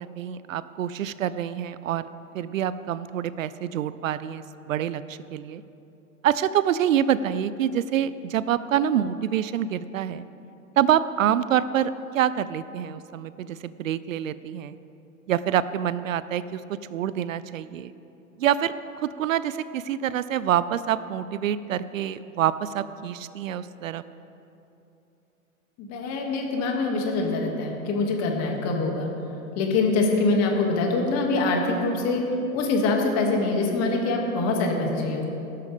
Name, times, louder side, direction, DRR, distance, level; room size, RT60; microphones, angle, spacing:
voice 1, 0.0-2.1 2.3-5.6 6.2-10.2 10.8-14.8 15.3-17.9 18.4-24.0, right 10 dB, 65° right, 15 dB, 0.6 m, -26 dB
voice 2, 25.8-29.1 29.6-32.2 32.5-35.2, left 3 dB, 35° left, 1 dB, 2.5 m, -24 dB
16.5 x 12.5 x 3.6 m, 2.8 s
hypercardioid pair, 105°, 42 cm